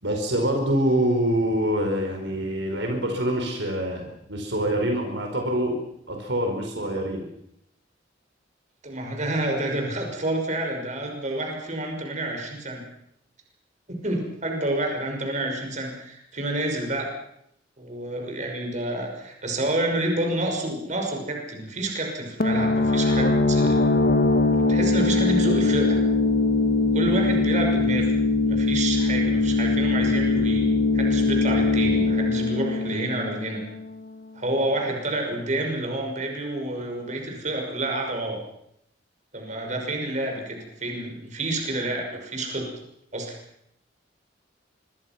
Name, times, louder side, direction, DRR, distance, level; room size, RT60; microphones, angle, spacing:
voice 1, 0.0-5.8 6.1-7.2, right 1 dB, 70° right, 3 dB, 5.0 m, -25 dB
voice 2, 8.8-12.8 13.9-17.1 17.8-23.8 24.6-26.0 26.9-28.1 28.5-30.7 30.9-33.6 34.3-38.4 39.3-42.7 43.1-43.4, right 1 dB, 40° right, 2 dB, 5.9 m, -28 dB
sound 1, 22.4-33.9, left 3 dB, 55° left, 1.5 m, -21 dB
25.5 x 23.0 x 6.0 m, 0.73 s
head